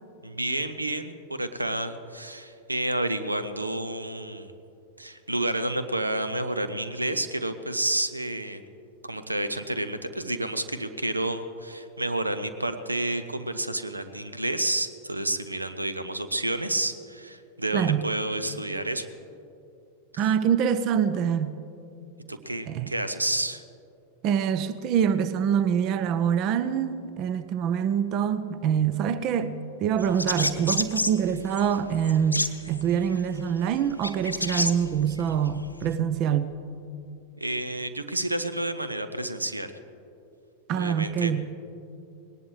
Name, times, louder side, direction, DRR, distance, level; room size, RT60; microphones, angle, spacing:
voice 1, 0.2-4.5 5.0-8.6 9.0-19.1 22.3-23.6 37.4-39.7 40.7-41.3, right 1 dB, 85° right, 0.7 m, -30 dB
voice 2, 17.7-18.0 20.2-21.5 22.7-22.9 24.2-36.5 40.7-41.4, right 8 dB, 40° right, 0.6 m, -25 dB
sound 1, 30.0-35.9, left 2 dB, 85° left, 0.7 m, -31 dB
19.5 x 18.0 x 3.3 m
figure-of-eight pair, 90°, 0 cm